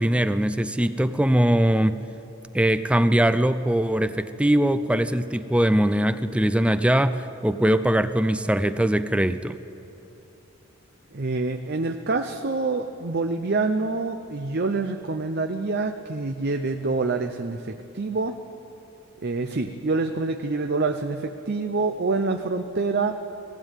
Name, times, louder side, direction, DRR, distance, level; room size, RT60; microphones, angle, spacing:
voice 1, 0.0-2.0 2.5-9.6, right 1 dB, 5° right, 12 dB, 0.5 m, -21 dB
voice 2, 11.1-18.4 19.2-23.2, right 3 dB, 50° right, 6 dB, 0.7 m, -26 dB
18.5 x 16.0 x 9.0 m, 2.9 s
head